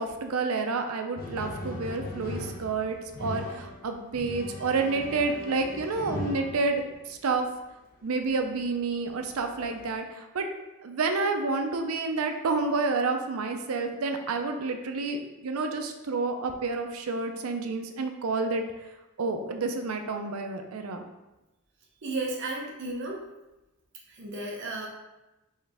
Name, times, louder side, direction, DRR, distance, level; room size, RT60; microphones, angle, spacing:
voice 1, 0.0-7.5 8.0-10.5 10.8-18.9 19.2-21.0, right 3 dB, 90° right, 5 dB, 0.5 m, -29 dB
sound 1, 1.2-7.2 8.4-8.5 9.3-10.0, left 1 dB, 45° left, 0.8 m, -39 dB
voice 2, 22.0-23.2 24.2-24.9, right 2 dB, 60° right, -1 dB, 0.8 m, -33 dB
4.6 x 3.2 x 3.4 m, 1.0 s
head